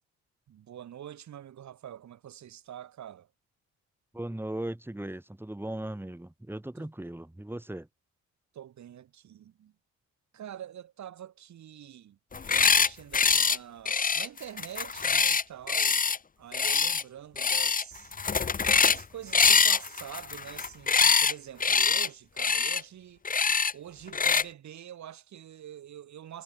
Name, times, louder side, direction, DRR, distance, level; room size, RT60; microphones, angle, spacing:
voice 1, 0.5-3.3 6.8-6.9 8.5-9.7 10.3-12.2 12.5-16.0 16.4-18.1 18.8-23.2 23.7-26.4, right 10 dB, 65° right, 5.5 m, -45 dB
voice 2, 4.1-7.9, right 1 dB, 5° right, 5.1 m, -37 dB
sound 1, 12.3-12.9 13.1-13.6 13.9-16.2 16.5-17.0 17.4-17.8 18.1-19.0 19.3-21.3 21.6-22.1 22.4-22.8 23.2-23.7 24.1-24.4, left 5 dB, 30° left, 1.1 m, -24 dB
cardioid pair, 90°, 30 cm